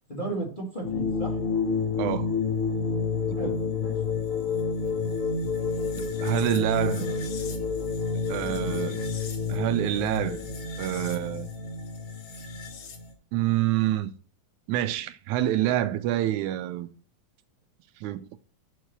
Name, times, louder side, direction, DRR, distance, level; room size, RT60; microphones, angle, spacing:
voice 1, 0.1-1.4 3.4-3.9 6.7-7.2, right 2 dB, 20° left, 1.6 m, -35 dB
sound 1, 0.8-13.1, left 4 dB, 85° left, 2.7 m, -29 dB
voice 2, 2.0-2.3 3.3-3.6 6.0-7.2 8.3-9.0 9.5-10.5 10.8-11.5 13.3-14.1 14.7-16.9 18.0-18.3, right 14 dB, 90° right, 2.0 m, -27 dB
6.7 x 4.7 x 6.6 m
omnidirectional pair, 3.4 m